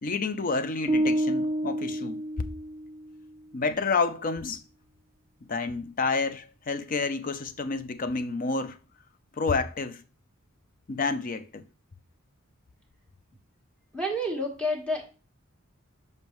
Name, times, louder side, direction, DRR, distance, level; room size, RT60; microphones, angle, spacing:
voice 1, 0.0-2.5 3.5-4.6 5.5-8.8 9.4-10.0 10.9-11.6, left 4 dB, 40° left, 0.5 m, -29 dB
sound 1, 0.9-3.1, right 1 dB, 10° right, 0.6 m, -28 dB
voice 2, 13.9-15.0, equal, 5° left, 1.4 m, -29 dB
7.0 x 5.4 x 3.1 m
head